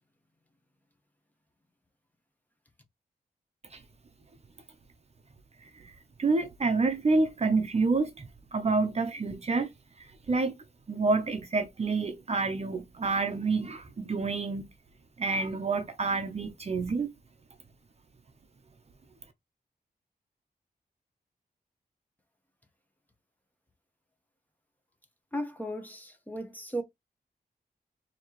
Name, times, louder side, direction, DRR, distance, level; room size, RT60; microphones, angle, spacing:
voice 1, 6.2-9.7 10.0-10.5 10.9-14.6 15.2-17.1, right 3 dB, 40° right, 0.7 m, -28 dB
voice 2, 25.3-26.8, equal, 10° left, 1.0 m, -35 dB
4.3 x 3.0 x 3.0 m
wide cardioid pair, 120°, 16 cm